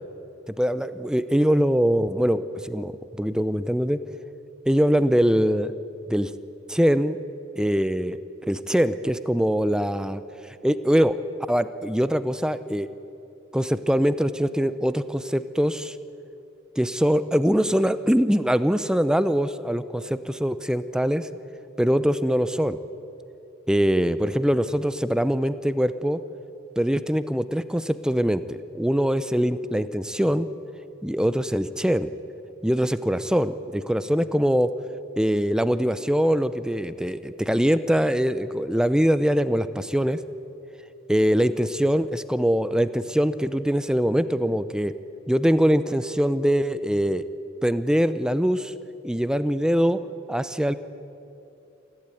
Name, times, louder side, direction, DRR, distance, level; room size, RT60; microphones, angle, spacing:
voice 1, 0.5-4.0 4.7-5.7 6.1-6.3 6.7-7.2 7.6-8.2 8.5-11.2 11.5-12.9 13.5-16.0 16.8-21.3 21.8-22.8 23.7-26.2 26.8-30.5 31.0-32.1 32.6-34.7 35.2-40.2 41.1-44.9 45.3-47.3 47.6-48.7 49.0-50.0 50.3-50.8, equal, 5° right, 13 dB, 0.6 m, -23 dB
28.0 x 12.0 x 9.1 m, 2.8 s
head